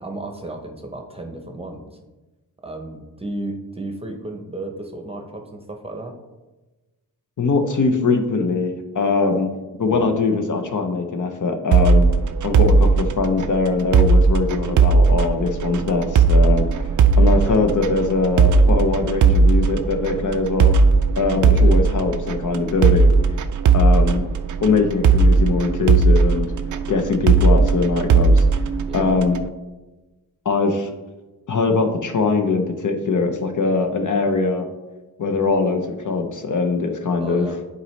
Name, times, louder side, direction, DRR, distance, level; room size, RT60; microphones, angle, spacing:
voice 1, 0.0-2.0 2.6-6.2 9.8-10.1 17.1-17.5 21.2-21.9 23.9-24.3 28.8-29.2 37.2-37.6, right 2 dB, 15° right, 3 dB, 0.8 m, -34 dB
voice 2, 7.4-9.5 9.8-12.1 12.4-16.7 17.2-20.7 21.2-23.1 23.7-24.2 24.6-26.5 26.9-28.4 28.9-29.4 30.4-30.9 31.5-34.7 35.2-37.5, left 4 dB, 50° left, 5 dB, 0.8 m, -21 dB
sound 1, 11.7-29.5, right 4 dB, 50° right, 0.4 m, -17 dB
10.5 x 4.1 x 3.2 m, 1.1 s
wide cardioid pair, 115°, 39 cm